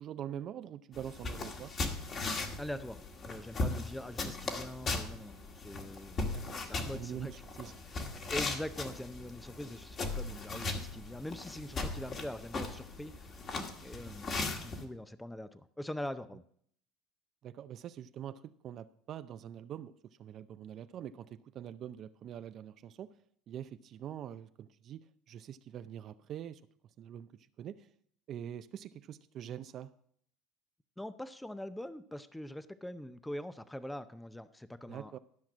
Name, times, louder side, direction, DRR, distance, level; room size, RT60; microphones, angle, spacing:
voice 1, 0.0-1.8 6.3-6.6 6.9-7.8 17.4-23.2 23.5-26.6 27.0-27.9 28.3-29.9 34.9-35.2, right 10 dB, 50° right, 12 dB, 0.5 m, -44 dB
sound 1, 0.9-14.8, left 3 dB, 40° left, 1.9 m, -38 dB
voice 2, 2.6-7.3 8.3-13.5 13.8-14.3 14.6-16.4 31.0-35.2, left 1 dB, 5° left, 14 dB, 0.6 m, -43 dB
13.0 x 5.9 x 6.2 m, 0.63 s
supercardioid pair, 100°, 0 cm